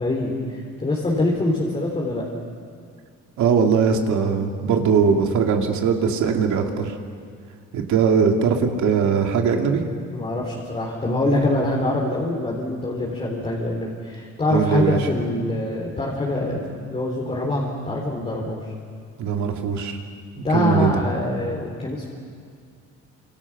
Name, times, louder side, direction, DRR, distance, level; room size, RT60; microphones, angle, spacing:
voice 1, 0.0-2.2 10.1-16.6 16.9-18.7 20.4-22.1, left 2 dB, 20° left, -3 dB, 3.6 m, -24 dB
voice 2, 3.4-7.0 7.7-9.8 14.5-15.0 19.2-20.0 20.5-21.0, right 6 dB, 75° right, 3 dB, 2.7 m, -20 dB
29.5 x 27.0 x 6.0 m, 2.2 s
cardioid pair, 150°, 30 cm